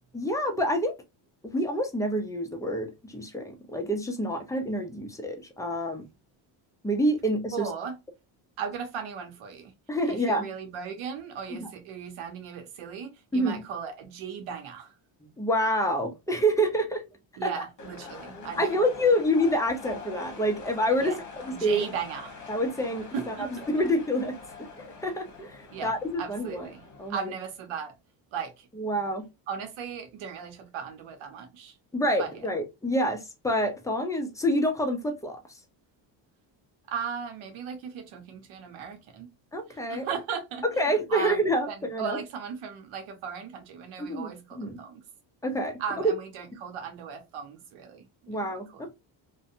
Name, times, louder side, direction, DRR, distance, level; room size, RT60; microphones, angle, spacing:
voice 1, 0.1-0.9 1.5-6.0 6.8-7.7 9.9-10.5 11.5-11.7 13.3-13.6 15.2-17.0 17.4-17.5 18.6-21.1 21.5-21.8 22.5-23.3 23.7-24.3 24.8-26.7 27.0-27.3 28.8-29.2 31.9-35.4 39.5-40.1 40.8-42.2 44.0-44.3 44.6-44.8 45.4-46.1 48.3-48.7, equal, 5° left, 0.5 m, -27 dB
voice 2, 7.5-7.9 8.6-9.7 10.1-14.9 17.4-18.8 21.0-21.2 21.5-22.4 23.1-23.7 25.7-26.8 27.1-27.9 28.3-28.7 29.5-31.8 32.2-32.5 36.9-39.3 39.7-45.0 45.8-48.4 48.7-48.9, right 7 dB, 80° right, 0.8 m, -37 dB
sound 1, 17.8-27.2, left 4 dB, 35° left, 1.1 m, -44 dB
2.6 x 2.2 x 2.5 m
cardioid pair, 115°, 48 cm